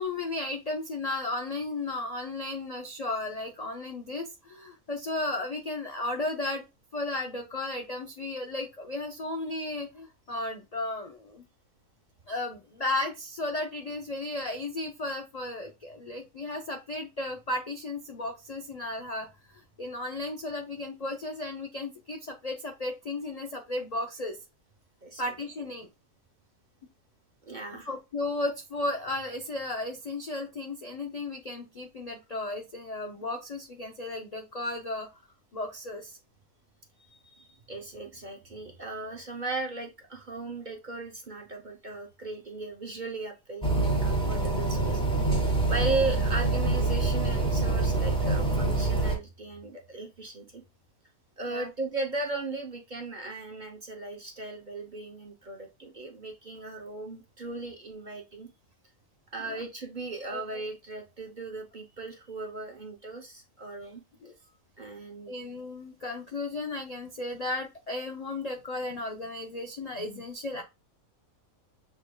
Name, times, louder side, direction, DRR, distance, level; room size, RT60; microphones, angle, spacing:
voice 1, 0.0-6.6 6.9-11.4 12.3-24.4 25.2-25.9 27.9-35.2 35.5-36.2 45.5-45.7 51.5-51.7 59.5-59.6 60.3-60.4 64.2-64.3 65.3-70.6, left 2 dB, 65° left, 3 dB, 0.4 m, -34 dB
voice 2, 27.5-27.9 37.0-45.3 45.7-50.6 51.4-58.5 59.3-64.0 64.8-65.4, right 2 dB, 40° right, 0 dB, 0.7 m, -37 dB
sound 1, 43.6-49.2, right 3 dB, 5° left, 1.3 m, -26 dB
6.5 x 3.3 x 2.2 m, 0.25 s
omnidirectional pair, 1.6 m